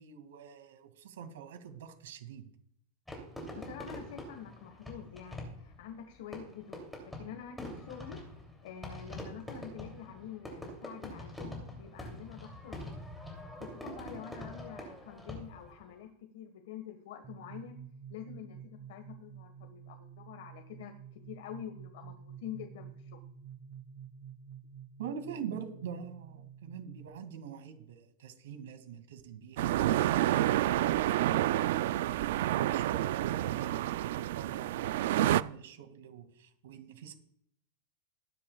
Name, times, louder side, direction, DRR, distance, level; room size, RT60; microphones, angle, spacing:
voice 1, 0.0-2.4 25.0-37.1, right 7 dB, 80° right, 8 dB, 2.1 m, -45 dB
Fireworks, 3.1-15.8, equal, 5° left, 2.8 m, -45 dB
voice 2, 3.5-8.2 8.6-13.0 13.6-17.8 18.1-20.9 21.3-22.1 22.4-23.2, left 9 dB, 60° left, 7 dB, 1.5 m, -47 dB
sound 1, 17.2-27.1, right 8 dB, 15° right, 0.9 m, -50 dB
sound 2, 29.6-35.4, right 14 dB, 60° right, 0.3 m, -29 dB
19.5 x 10.0 x 2.3 m, 0.69 s
supercardioid pair, 170°, 0 cm